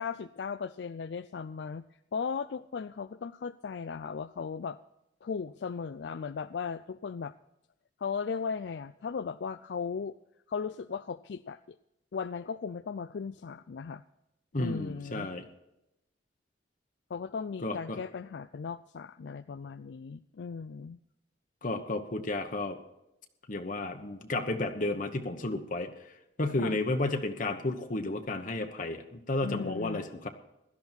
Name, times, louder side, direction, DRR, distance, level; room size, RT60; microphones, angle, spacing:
voice 1, 0.0-1.8 2.1-4.8 5.2-7.3 8.0-10.2 10.5-11.8 12.1-14.0 14.6-15.3 17.1-21.0 26.6-26.8 29.4-30.0, left 6 dB, 65° left, 13 dB, 0.4 m, -37 dB
voice 2, 14.5-15.5 17.6-18.0 21.6-22.8 23.5-25.9 26.4-30.3, left 2 dB, 45° left, 5 dB, 1.0 m, -32 dB
16.5 x 12.0 x 4.4 m, 0.87 s
head